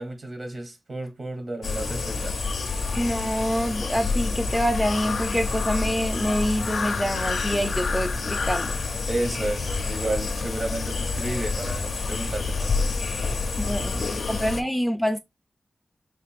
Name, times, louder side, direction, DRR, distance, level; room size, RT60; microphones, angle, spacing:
voice 1, 0.0-2.4 9.1-13.0 13.7-14.7, right 2 dB, 55° right, 1.0 m, -32 dB
sound 1, 1.6-14.6, left 4 dB, 90° left, 0.4 m, -28 dB
voice 2, 3.0-8.8 13.6-15.2, equal, 5° right, 0.4 m, -26 dB
3.2 x 2.4 x 3.4 m
cardioid pair, 55°, 0 cm